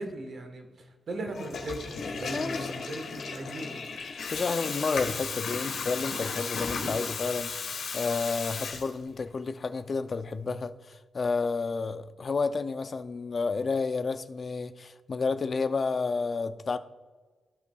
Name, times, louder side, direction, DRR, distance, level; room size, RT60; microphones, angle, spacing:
voice 1, 0.0-3.8, right 2 dB, 55° right, 1.2 m, -38 dB
Water tap faucet / Toilet flush, 1.2-9.3, left 5 dB, 80° left, 1.2 m, -35 dB
voice 2, 2.2-2.7 4.3-16.8, left 4 dB, 40° left, 0.4 m, -31 dB
14.5 x 5.6 x 2.3 m
wide cardioid pair, 140°, 0 cm